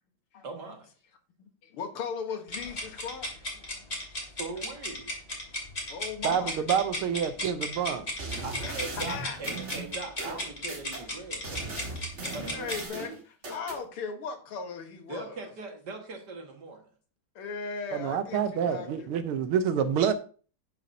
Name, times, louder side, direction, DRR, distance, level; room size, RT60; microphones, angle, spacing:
voice 1, 0.4-0.9 4.4-5.2 8.4-12.7 15.1-16.8, right 3 dB, 50° right, 2.3 m, -41 dB
voice 2, 1.4-3.9 4.1-4.3 5.9-6.6 8.6-8.8 9.1-9.4 11.9-12.0 12.5-15.5 17.4-19.1, left 5 dB, 85° left, 2.3 m, -38 dB
sound 1, 2.5-12.9, left 1 dB, 30° left, 2.7 m, -36 dB
voice 3, 6.2-8.1 17.9-20.1, right 8 dB, 80° right, 1.8 m, -27 dB
sound 2, 8.2-11.0 11.4-13.8, right 3 dB, 35° right, 2.2 m, -38 dB
11.0 x 9.2 x 2.8 m
omnidirectional pair, 2.4 m